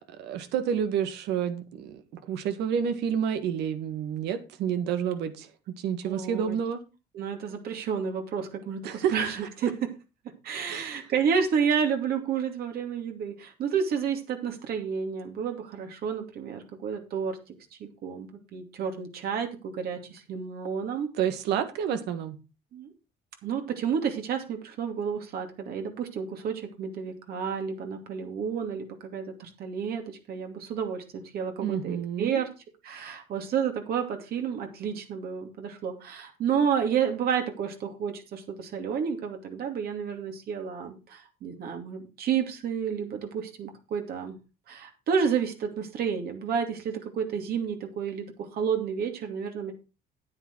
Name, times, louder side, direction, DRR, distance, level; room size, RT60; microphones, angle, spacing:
voice 1, 0.1-2.0 2.3-6.8 8.8-9.1 9.6-9.7 10.7-10.9 21.2-22.4 31.6-32.4, right 8 dB, 85° right, 1.7 m, -29 dB
voice 2, 6.0-6.6 7.1-9.7 10.4-17.4 17.8-21.1 22.7-22.9 23.4-32.5 32.8-44.4 44.7-49.7, right 7 dB, 65° right, 2.6 m, -30 dB
9.5 x 9.1 x 4.6 m
cardioid pair, 110°, 17 cm